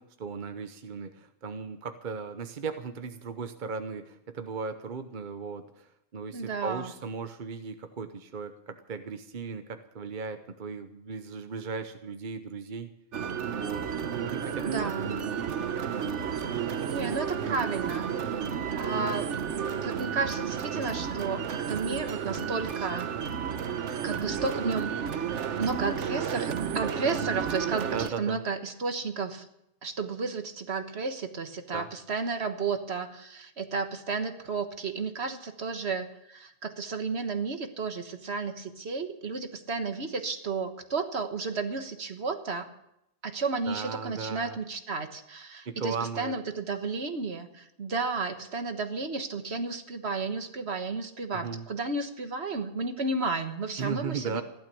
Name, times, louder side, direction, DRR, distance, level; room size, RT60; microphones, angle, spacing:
voice 1, 0.0-12.9 13.6-15.2 27.9-28.4 31.7-31.9 43.7-44.6 45.7-46.3 51.3-51.7 53.8-54.4, right 5 dB, 45° right, 8 dB, 1.0 m, -37 dB
voice 2, 6.3-6.9 14.6-15.2 16.7-18.1 18.8-19.3 19.8-23.1 24.0-24.9 25.6-29.4 29.8-42.7 43.2-54.4, right 4 dB, 65° right, 7 dB, 1.6 m, -32 dB
sound 1, 13.1-28.1, right 7 dB, 85° right, 1.3 m, -32 dB
15.5 x 12.0 x 6.9 m, 0.81 s
omnidirectional pair, 1.2 m